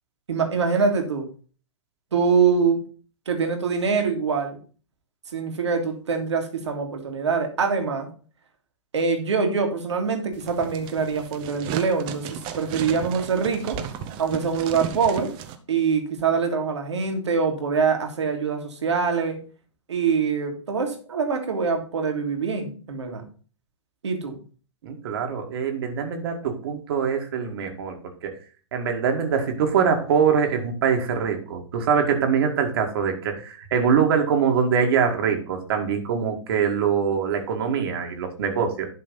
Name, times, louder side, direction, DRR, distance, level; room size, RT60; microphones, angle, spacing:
voice 1, 0.3-1.3 2.1-2.8 3.3-4.6 5.3-8.1 8.9-13.8 14.2-15.3 15.7-19.4 19.9-23.2 24.0-24.4, right 5 dB, 70° right, 4 dB, 2.2 m, -24 dB
sound 1, 10.3-15.6, right 9 dB, 30° right, 1.0 m, -35 dB
voice 2, 24.8-28.0 28.2-28.3 28.7-38.9, right 6 dB, 50° right, 4 dB, 2.0 m, -23 dB
11.5 x 3.9 x 5.4 m, 0.39 s
figure-of-eight pair, 110°, 15 cm